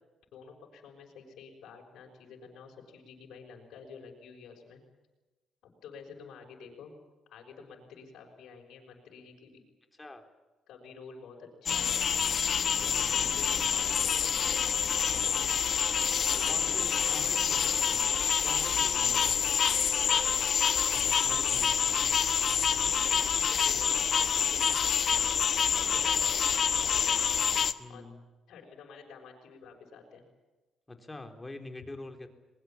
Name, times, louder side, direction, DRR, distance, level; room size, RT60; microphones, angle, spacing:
voice 1, 0.3-4.8 5.6-6.9 7.3-9.6 10.7-12.0 12.6-14.6 15.0-15.5 16.3-17.7 19.0-19.4 19.9-20.6 21.4-22.0 22.8-26.4 26.7-27.5 27.9-28.0 28.5-30.2, left 5 dB, 80° left, 0 dB, 6.2 m, -50 dB
sound 1, 11.7-27.7, left 7 dB, 55° left, 1.2 m, -27 dB
voice 2, 12.8-13.4 16.3-18.1 18.4-19.5 20.9-22.0 26.1-26.3 27.8-28.2 30.9-32.3, left 2 dB, 15° left, 6 dB, 3.8 m, -46 dB
22.5 x 22.0 x 8.8 m, 1.2 s
cardioid pair, 90°, 0 cm